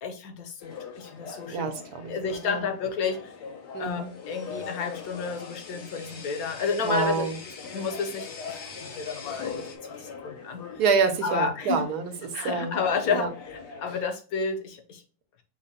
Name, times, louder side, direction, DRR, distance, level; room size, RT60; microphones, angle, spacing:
voice 1, 0.0-1.7 2.1-3.3 3.8-7.3 7.7-9.6 9.9-10.6 11.2-11.8 12.3-15.0, left 5 dB, 65° left, 6 dB, 1.2 m, -31 dB
sound 1, 0.6-14.0, left 5 dB, 85° left, 1.4 m, -42 dB
voice 2, 1.5-2.7 3.7-4.1 6.8-7.4 10.8-12.8 13.1-13.3, right 5 dB, 75° right, 6 dB, 1.4 m, -27 dB
sound 2, 3.9-9.8, left 4 dB, 45° left, 0.8 m, -45 dB
5.3 x 2.2 x 4.1 m, 0.35 s
omnidirectional pair, 1.8 m